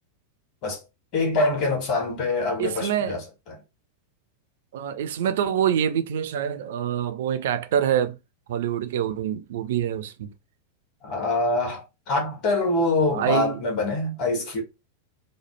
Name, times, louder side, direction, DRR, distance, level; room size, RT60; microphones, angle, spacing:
voice 1, 1.1-3.5 11.0-14.6, left 2 dB, 40° left, 1.4 m, -25 dB
voice 2, 2.6-3.2 4.7-8.2 8.5-10.3 13.1-13.6, right 9 dB, 55° right, 0.4 m, -26 dB
3.0 x 2.1 x 3.1 m
figure-of-eight pair, 90°, 0 cm